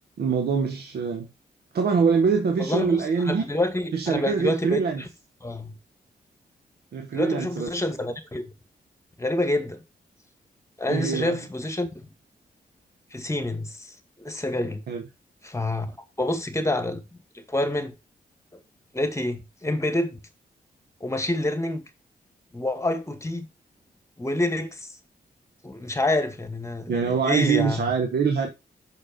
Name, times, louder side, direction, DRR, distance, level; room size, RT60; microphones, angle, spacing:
voice 1, 0.2-1.3 1.7-3.4 3.9-5.0 6.9-7.7 10.9-11.4 14.9-15.0 26.9-28.5, right 5 dB, 80° right, 1.4 m, -24 dB
voice 2, 2.6-5.1 5.4-5.8 7.1-8.5 9.2-9.8 10.8-11.9 13.1-14.8 15.4-15.9 16.2-17.0 17.3-18.0 18.5-18.6 18.9-20.2 21.0-21.9 22.5-23.5 24.2-24.9 25.6-27.9, left 1 dB, 15° left, 2.1 m, -27 dB
6.5 x 6.2 x 5.3 m
cardioid pair, 70°, 17 cm